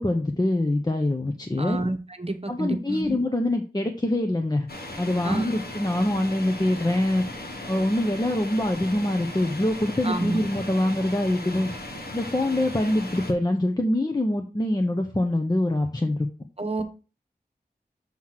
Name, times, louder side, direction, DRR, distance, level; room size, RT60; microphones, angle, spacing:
voice 1, 0.0-1.8 2.5-4.7 5.0-7.2 7.7-11.7 12.1-16.3, left 1 dB, 25° left, 4 dB, 0.7 m, -24 dB
voice 2, 1.6-3.1 5.2-5.4 10.0-10.4 16.6-16.8, right 2 dB, 35° right, 8 dB, 0.9 m, -29 dB
sound 1, 4.7-13.3, left 1 dB, 70° left, 1.2 m, -37 dB
7.3 x 3.1 x 5.7 m, 0.34 s
wide cardioid pair, 55°, 16 cm